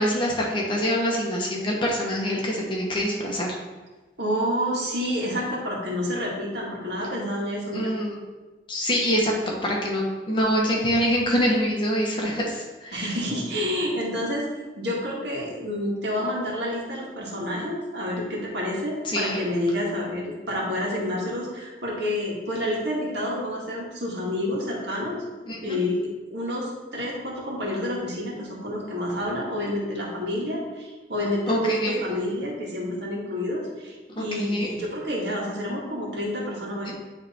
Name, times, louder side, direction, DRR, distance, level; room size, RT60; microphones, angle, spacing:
voice 1, 0.0-3.5 7.7-8.2 8.7-9.3 9.6-13.1 19.0-19.4 25.5-25.8 31.5-32.0 34.2-34.7 36.9-37.0, equal, 25° left, -2 dB, 1.1 m, -25 dB
voice 2, 4.2-7.9 12.9-14.5 14.8-25.2 25.6-36.9, left 1 dB, 70° right, -3 dB, 1.8 m, -29 dB
9.2 x 3.4 x 4.3 m, 1.2 s
head